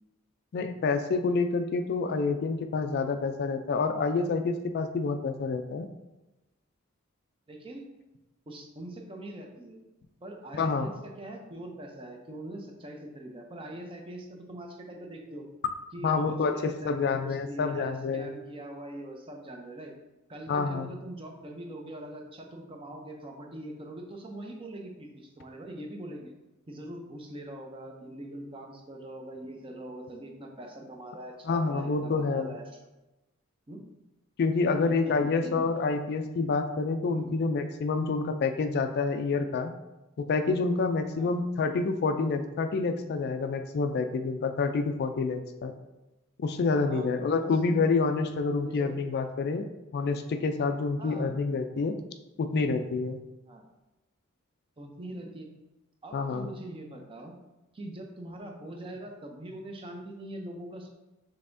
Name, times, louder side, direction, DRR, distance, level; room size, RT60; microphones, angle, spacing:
voice 1, 0.5-5.9 10.5-10.9 16.0-18.4 20.5-20.9 31.4-32.6 34.4-39.7 40.2-45.7 46.4-49.7 49.9-52.0 52.4-53.2 56.1-56.5, left 4 dB, 50° left, 7 dB, 0.3 m, -28 dB
voice 2, 7.5-7.8 8.5-9.8 10.2-15.5 15.9-19.9 20.3-26.3 26.7-32.6 33.7-33.8 34.8-35.7 37.0-37.3 41.2-41.3 46.9-47.5 48.6-49.0 51.0-51.3 53.5-53.7 54.8-55.5 56.0-57.3 57.7-60.9, right 1 dB, 25° right, 2 dB, 0.6 m, -42 dB
5.4 x 3.4 x 2.6 m, 0.98 s
head